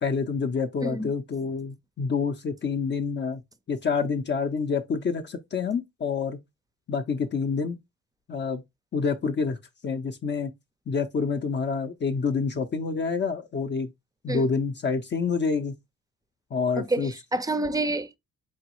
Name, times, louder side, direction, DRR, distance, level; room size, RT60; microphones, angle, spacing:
voice 1, 0.0-3.4 3.7-6.4 6.9-7.8 8.3-8.6 8.9-9.6 9.8-10.5 10.9-13.9 14.2-15.7 16.5-17.1, left 5 dB, 35° left, 0.6 m, -27 dB
voice 2, 0.8-1.1 14.3-14.5 16.8-18.2, right 2 dB, 10° right, 0.5 m, -28 dB
4.7 x 3.0 x 2.9 m
cardioid pair, 90°, 30 cm